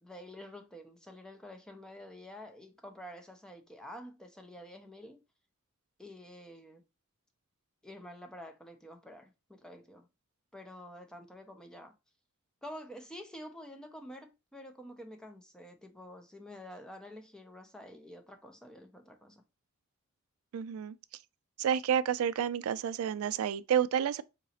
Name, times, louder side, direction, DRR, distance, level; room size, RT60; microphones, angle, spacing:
voice 1, 0.0-5.2 6.0-6.8 7.8-10.1 10.5-11.9 12.6-19.4, equal, 5° left, 0.5 m, -48 dB
voice 2, 20.5-21.0 21.6-24.2, right 8 dB, 80° right, 0.3 m, -30 dB
3.9 x 2.9 x 2.8 m
head